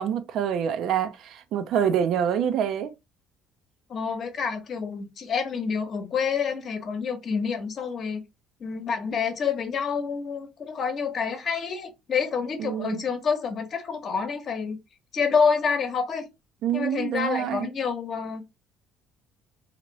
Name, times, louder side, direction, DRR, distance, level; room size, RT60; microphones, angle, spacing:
voice 1, 0.0-2.9 12.6-13.0 16.6-17.7, right 9 dB, 65° right, 0.5 m, -26 dB
voice 2, 3.9-8.2 8.6-14.8 15.1-16.3 16.7-18.4, left 6 dB, 50° left, 0.9 m, -28 dB
2.8 x 2.5 x 3.0 m
supercardioid pair, 80°, 0 cm